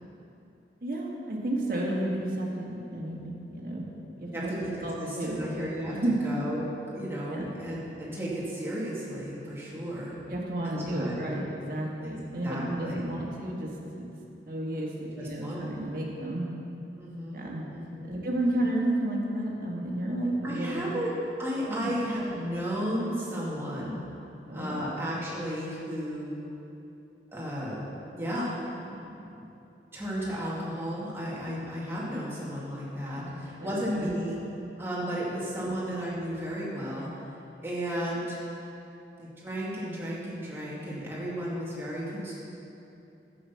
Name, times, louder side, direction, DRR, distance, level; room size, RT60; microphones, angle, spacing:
voice 1, 0.8-3.9 4.2-4.5 4.8-5.4 5.9-6.2 7.3-7.5 10.3-14.1 14.5-16.5 17.3-17.6 18.0-20.9 21.6-21.9 24.5-24.8 33.1-34.1 35.6-35.7, right 1 dB, 50° right, -3 dB, 1.8 m, -32 dB
voice 2, 4.3-5.9 6.2-6.7 6.9-10.2 10.6-11.5 12.0-12.1 12.4-13.1 15.1-15.7 17.0-17.4 17.7-18.2 20.4-21.1 21.4-24.0 24.5-26.4 27.3-27.8 28.1-29.5 29.9-34.4 34.8-37.1 37.6-38.4 39.2-42.3, equal, 15° right, -7 dB, 2.2 m, -34 dB
11.0 x 8.0 x 5.7 m, 2.9 s
head